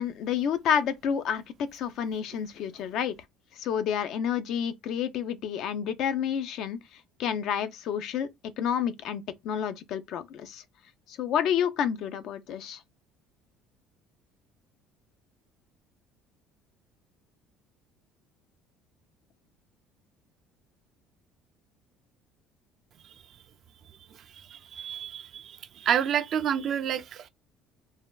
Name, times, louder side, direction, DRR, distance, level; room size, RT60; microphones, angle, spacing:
voice 1, 0.0-3.2 3.6-6.8 7.2-8.3 8.6-10.6 11.1-12.8, left 8 dB, 65° left, 0.4 m, -29 dB
voice 2, 24.3-27.3, right 9 dB, 50° right, 0.3 m, -29 dB
3.3 x 2.2 x 2.2 m
cardioid pair, 110°, 0 cm